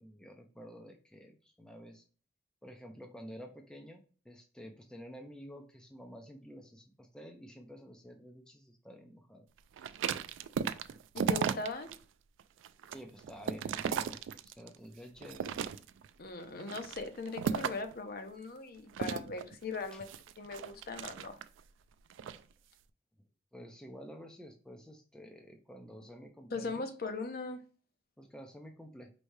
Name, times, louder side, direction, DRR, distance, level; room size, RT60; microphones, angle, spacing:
voice 1, 0.0-2.0 2.6-9.5 12.9-14.2 14.6-15.5 19.9-20.0 23.5-26.9 28.2-29.1, equal, 5° left, 3 dB, 0.4 m, -50 dB
sound 1, 9.8-12.0 12.4-14.8 15.2-16.1 16.6-17.9 18.9-21.6 22.1-22.4, right 7 dB, 80° right, 0.3 m, -35 dB
voice 2, 11.1-11.9 16.2-20.1 20.4-21.4 26.5-27.6, left 3 dB, 50° left, 7 dB, 0.6 m, -39 dB
4.6 x 3.1 x 2.6 m, 0.39 s
head